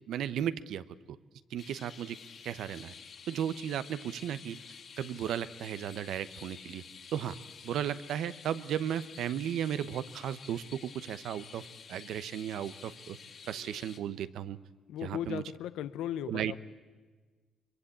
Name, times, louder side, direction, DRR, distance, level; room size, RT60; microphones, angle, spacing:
voice 1, 0.1-0.8 1.5-2.2 2.4-2.9 3.3-4.6 5.0-6.8 7.1-7.4 7.6-13.2 13.5-14.6 15.0-15.4 16.3-16.5, right 10 dB, 80° right, 0.9 m, -35 dB
sound 1, 1.6-14.0, left 6 dB, 55° left, 3.1 m, -50 dB
voice 2, 14.9-16.6, left 10 dB, 90° left, 0.9 m, -37 dB
24.0 x 23.0 x 8.7 m
cardioid pair, 90°, 0 cm